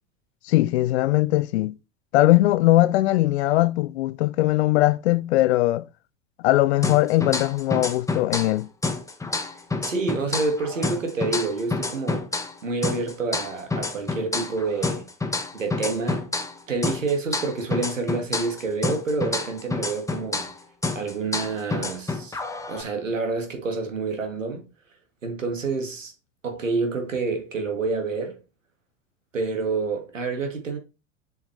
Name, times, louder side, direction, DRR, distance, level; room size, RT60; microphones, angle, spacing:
voice 1, 0.5-1.7 2.1-5.8 6.4-8.7, left 17 dB, 60° left, 0.6 m, -20 dB
sound 1, 6.8-8.6 8.8-12.6 12.8-16.6 16.8-20.6 20.8-22.8, left 3 dB, 10° left, 1.0 m, -28 dB
voice 2, 9.8-12.3 12.6-15.1 15.5-16.3 16.7-20.5 20.9-22.4 22.7-24.7 25.2-26.1 26.4-28.4 29.3-30.8, right 3 dB, 85° right, 1.8 m, -28 dB
7.1 x 5.7 x 3.2 m
figure-of-eight pair, 80°, 37 cm